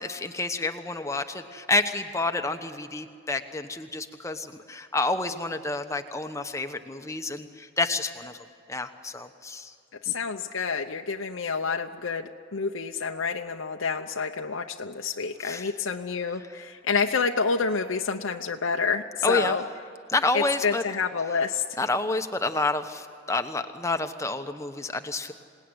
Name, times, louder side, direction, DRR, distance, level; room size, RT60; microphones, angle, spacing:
voice 1, 0.0-9.7 10.1-10.2 15.4-15.7 19.2-19.5 20.1-20.8 21.8-25.3, left 2 dB, 15° left, 7 dB, 1.0 m, -29 dB
voice 2, 10.0-19.6 20.3-21.6, left 5 dB, 75° left, 3 dB, 0.8 m, -28 dB
27.0 x 18.5 x 9.7 m, 2.4 s
head